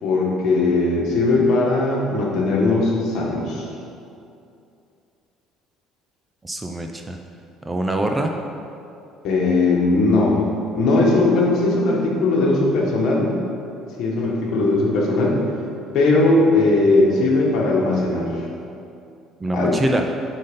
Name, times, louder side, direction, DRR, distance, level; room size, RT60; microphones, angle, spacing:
voice 1, 0.0-3.7 9.2-10.4 10.7-13.3 14.0-15.4 15.9-18.4 19.5-19.8, left 2 dB, 55° left, -3 dB, 1.4 m, -19 dB
voice 2, 6.4-7.2 7.6-8.5 19.4-20.1, right 1 dB, 15° right, 3 dB, 0.4 m, -24 dB
7.8 x 4.0 x 5.2 m, 2.6 s
cardioid pair, 150°, 0 cm